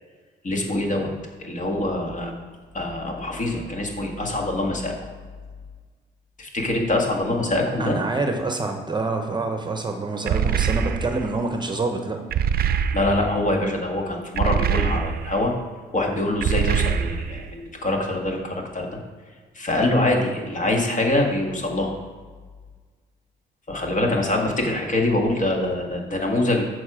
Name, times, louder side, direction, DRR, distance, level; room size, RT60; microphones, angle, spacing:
voice 1, 0.4-1.1 1.4-2.3 2.7-5.0 6.4-8.0 12.9-15.5 15.9-18.9 19.6-21.9 23.7-26.6, left 1 dB, 40° left, 1 dB, 1.7 m, -24 dB
voice 2, 7.8-12.2, right 3 dB, 20° right, 5 dB, 0.9 m, -26 dB
sound 1, 10.3-11.3 12.3-13.4 14.4-15.4 16.4-17.5, right 7 dB, 50° right, 0.5 m, -24 dB
7.1 x 6.3 x 4.9 m, 1.5 s
cardioid pair, 90°, 20 cm